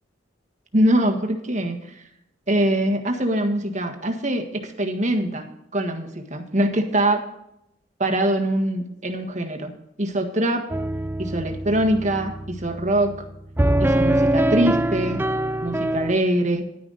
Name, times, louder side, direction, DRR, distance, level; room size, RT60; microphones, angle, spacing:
voice 1, 0.7-2.0 2.5-5.5 5.7-7.2 8.0-9.7 10.0-10.6 11.2-13.1 13.8-15.2 15.6-16.6, right 1 dB, 40° right, 4 dB, 1.6 m, -23 dB
sound 1, 10.7-16.2, right 1 dB, 10° right, 0.4 m, -23 dB
11.0 x 10.5 x 4.1 m, 0.78 s
head